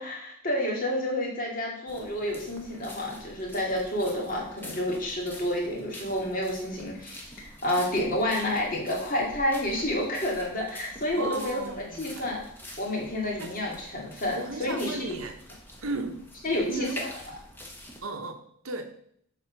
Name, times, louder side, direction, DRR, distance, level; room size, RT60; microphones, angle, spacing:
voice 1, 0.0-11.6 11.9-12.4 12.8-15.2 16.4-16.9, left 1 dB, 40° left, -2 dB, 2.2 m, -29 dB
sound 1, 1.9-18.0, left 1 dB, 10° left, 1.1 m, -46 dB
voice 2, 11.2-12.2 13.4-13.5 14.3-15.4 15.8-16.2 16.7-17.0 18.0-18.8, right 2 dB, 70° right, 6 dB, 1.0 m, -35 dB
7.5 x 4.1 x 5.9 m, 0.67 s
head